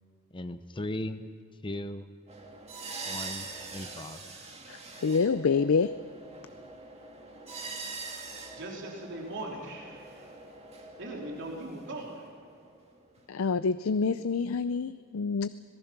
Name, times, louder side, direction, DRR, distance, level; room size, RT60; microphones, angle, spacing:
voice 1, 0.3-1.3 1.6-2.1 3.1-4.2, left 1 dB, 25° left, 9 dB, 0.8 m, -37 dB
sound 1, 2.3-13.2, right 3 dB, 30° right, 2.1 m, -44 dB
voice 2, 4.7-5.9 13.3-15.5, left 5 dB, 70° left, 13 dB, 0.5 m, -27 dB
voice 3, 8.6-10.3 11.0-12.3, right 1 dB, 60° right, -1 dB, 3.7 m, -40 dB
25.5 x 19.0 x 5.9 m, 2.2 s
head